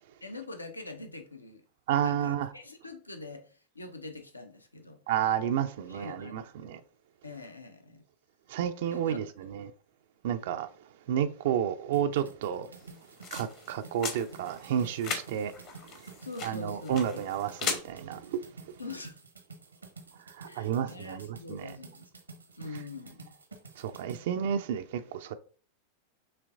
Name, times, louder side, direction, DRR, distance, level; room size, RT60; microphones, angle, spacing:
voice 1, 0.2-1.6 2.0-5.0 5.9-6.4 7.2-8.0 8.9-9.3 16.2-17.3 18.8-19.2 20.4-22.1 22.6-23.3, left 3 dB, 80° left, 0.6 m, -44 dB
voice 2, 1.9-2.5 5.1-6.8 8.5-9.7 10.2-10.7 11.1-12.7 13.3-15.5 16.4-18.4 20.4-21.7 23.8-25.3, right 9 dB, 55° right, 0.3 m, -31 dB
sound 1, 11.9-24.2, right 4 dB, 80° right, 0.8 m, -50 dB
sound 2, 12.8-17.8, left 5 dB, 40° left, 0.9 m, -39 dB
6.5 x 3.1 x 2.5 m
figure-of-eight pair, 90°, 0 cm